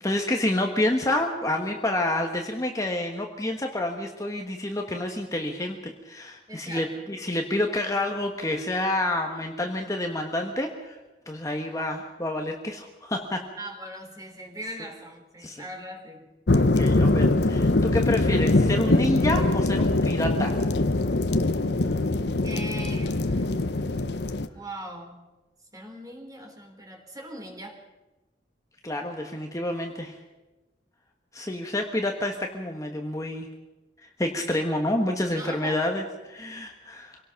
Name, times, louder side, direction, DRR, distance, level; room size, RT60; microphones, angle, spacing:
voice 1, 0.0-11.0 11.3-13.4 15.4-15.6 16.5-20.6 28.8-30.2 31.3-33.5 34.2-37.2, left 1 dB, 20° left, 2 dB, 1.4 m, -28 dB
voice 2, 6.5-7.1 13.6-16.3 22.4-23.9 24.5-25.3 25.7-27.8 35.3-35.8, right 1 dB, 20° right, 3 dB, 3.4 m, -40 dB
sound 1, 16.5-24.5, left 2 dB, 70° left, 0.9 m, -23 dB
25.5 x 18.0 x 5.9 m, 1.1 s
head